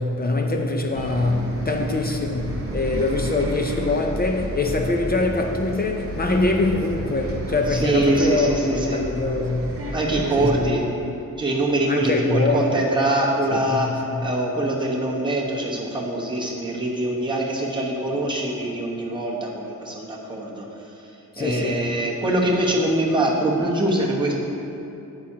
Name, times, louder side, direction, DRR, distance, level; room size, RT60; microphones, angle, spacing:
voice 1, 0.0-9.8 10.4-10.8 11.9-12.9 13.7-13.8 14.1-14.2 21.3-21.9, left 2 dB, 30° left, 3 dB, 0.5 m, -23 dB
Bus, 0.9-10.6, right 1 dB, 40° right, 1.4 m, -32 dB
voice 2, 7.7-9.0 9.9-10.8 11.4-24.3, right 1 dB, 15° right, -4 dB, 1.2 m, -23 dB
11.5 x 8.7 x 2.8 m, 2.9 s
wide cardioid pair, 170°, 33 cm